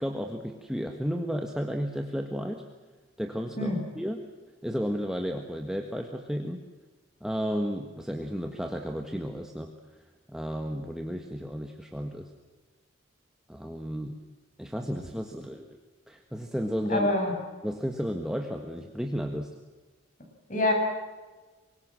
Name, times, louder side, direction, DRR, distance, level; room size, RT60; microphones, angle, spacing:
voice 1, 0.0-2.6 3.2-4.2 4.6-6.6 7.2-9.7 10.3-12.3 13.5-14.1 14.6-15.7 16.1-17.1 17.6-19.5, equal, 5° right, 3 dB, 1.6 m, -33 dB
voice 2, 16.9-17.4 20.5-20.7, left 2 dB, 40° left, 3 dB, 7.4 m, -25 dB
24.5 x 22.5 x 7.6 m, 1.3 s
head